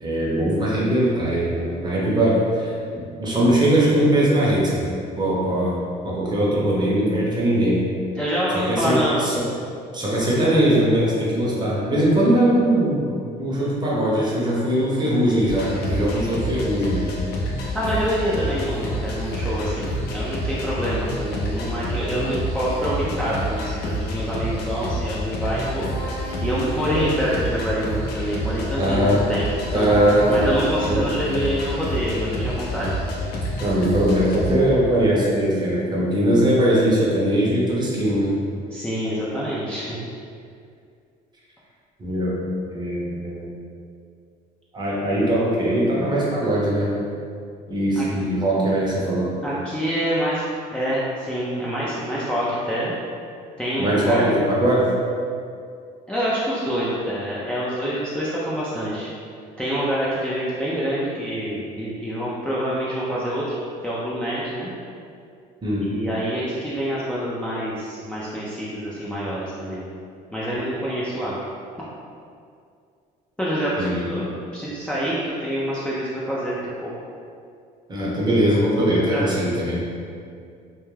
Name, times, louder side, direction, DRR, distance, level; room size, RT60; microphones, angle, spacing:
voice 1, 0.0-4.9 5.2-7.8 8.5-9.5 9.9-17.1 26.9-27.2 28.8-29.3 29.7-30.5 30.9-31.1 33.6-38.4 42.0-43.5 44.7-47.0 47.7-49.4 53.8-54.9 65.6-65.9 73.8-74.1 77.9-79.8, right 1 dB, 25° right, -5 dB, 0.7 m, -21 dB
voice 2, 8.2-9.3 17.7-25.9 26.4-29.9 30.3-32.9 38.7-40.0 48.0-48.1 49.4-50.4 50.7-53.0 53.6-54.3 56.1-59.1 59.6-63.4 63.8-64.7 65.9-69.8 70.3-71.4 73.4-74.3 74.5-76.9 79.0-79.2, equal, 5° left, -9 dB, 0.3 m, -26 dB
sound 1, 15.5-34.6, equal, 75° left, 0.5 m, -28 dB
2.2 x 2.1 x 3.1 m, 2.3 s
cardioid pair, 110°, 17 cm